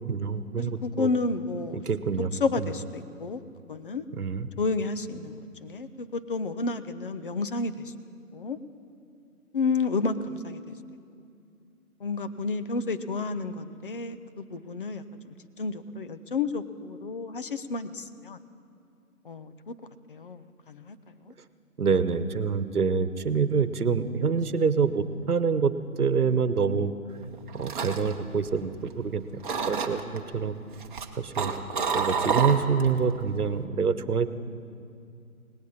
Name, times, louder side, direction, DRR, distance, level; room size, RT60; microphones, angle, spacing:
voice 1, 0.0-1.1 1.7-2.3 2.6-2.7 4.2-4.5 21.8-25.7 26.0-26.9 27.5-29.2 29.7-30.6 31.2-31.5 31.9-34.3, right 5 dB, 80° right, 12 dB, 1.1 m, -26 dB
voice 2, 0.6-1.8 2.4-3.4 3.7-4.0 4.6-7.9 8.3-8.6 9.5-10.6 12.0-18.4 19.2-19.7 20.1-21.0 21.2-21.3, left 3 dB, 35° left, 11 dB, 0.7 m, -31 dB
sound 1, 27.2-29.1 29.4-30.2 30.7-33.0 33.3-33.6, right 5 dB, 35° right, 1.0 m, -29 dB
18.5 x 18.5 x 4.2 m, 2.5 s
figure-of-eight pair, 150°, 45 cm